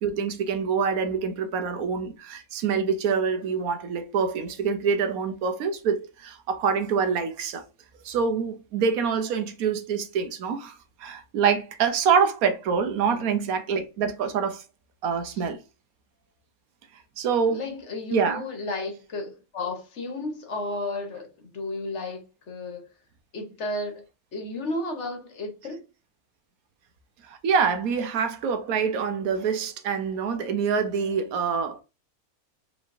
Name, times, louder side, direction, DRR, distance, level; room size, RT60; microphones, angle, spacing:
voice 1, 0.0-7.6 8.0-14.6 15.0-15.6 17.2-17.6 18.1-18.4 27.2-31.8, right 6 dB, 75° right, 1.1 m, -26 dB
voice 2, 17.5-22.9 23.3-24.0 24.3-25.8, left 2 dB, 55° left, 1.3 m, -33 dB
5.0 x 3.3 x 2.6 m
omnidirectional pair, 1.6 m